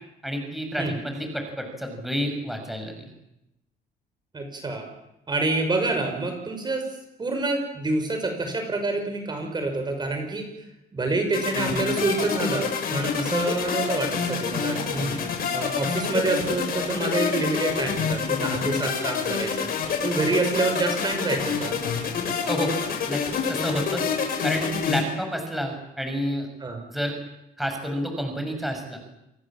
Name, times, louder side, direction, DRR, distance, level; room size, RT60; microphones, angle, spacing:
voice 1, 0.2-3.1 22.4-22.7 23.1-23.2 23.5-26.5 26.9-27.2 27.6-29.0, equal, ahead, 4 dB, 6.5 m, -29 dB
voice 2, 4.3-4.8 5.3-6.9 7.2-10.5 10.9-15.1 15.5-19.7 20.0-21.8 26.6-26.8, right 3 dB, 25° right, 4 dB, 6.0 m, -27 dB
sound 1, 11.3-25.0, left 6 dB, 60° left, 7.5 m, -27 dB
28.5 x 22.0 x 7.5 m, 0.88 s
cardioid pair, 110°, 17 cm